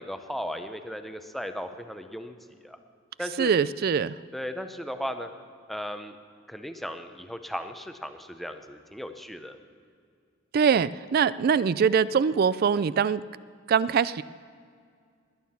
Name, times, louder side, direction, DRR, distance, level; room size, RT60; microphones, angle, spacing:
voice 1, 0.0-2.8 3.2-3.5 4.3-5.3 5.7-6.2 6.5-9.6, equal, ahead, 7 dB, 0.7 m, -36 dB
voice 2, 3.4-4.1 10.5-13.2 13.7-14.2, right 6 dB, 50° right, 18 dB, 0.3 m, -23 dB
21.0 x 9.3 x 5.7 m, 2.2 s
head